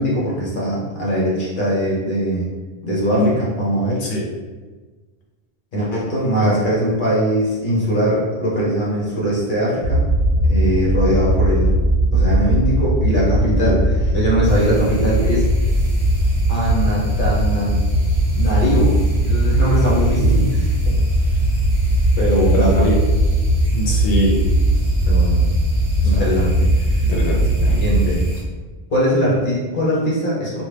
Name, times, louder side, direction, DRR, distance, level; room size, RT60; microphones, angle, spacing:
voice 1, 0.0-2.5 2.8-4.0 5.7-10.1 10.5-11.8 12.1-15.4 16.5-17.8 18.3-21.0 22.2-22.9 25.1-25.5 26.0-27.1 27.7-28.3 28.9-30.6, equal, 50° left, -6 dB, 0.9 m, -21 dB
sound 1, 9.8-28.2, right 1 dB, 60° right, 0.8 m, -18 dB
sound 2, 14.4-28.4, left 1 dB, 20° left, 1.2 m, -31 dB
voice 2, 22.5-22.9 23.7-24.3 26.1-26.2 27.1-27.8, equal, 75° left, -2 dB, 0.9 m, -22 dB
2.7 x 2.2 x 3.3 m, 1.3 s
omnidirectional pair, 1.1 m